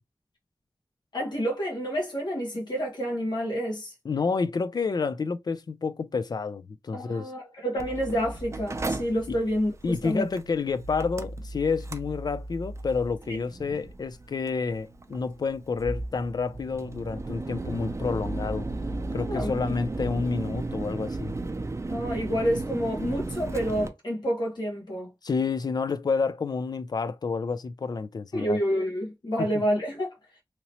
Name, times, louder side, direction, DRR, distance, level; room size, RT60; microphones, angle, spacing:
voice 1, 1.1-3.9 6.9-10.2 19.3-19.7 21.9-25.1 28.3-30.1, equal, 90° left, 1.3 m, -29 dB
voice 2, 4.1-7.3 9.3-9.4 9.8-18.7 19.1-21.3 25.2-28.6 29.4-29.5, left 4 dB, 65° left, 0.4 m, -29 dB
Mechanical fan, 7.8-23.9, right 2 dB, 40° right, 0.5 m, -35 dB
3.0 x 2.9 x 2.8 m
wide cardioid pair, 70°, 7 cm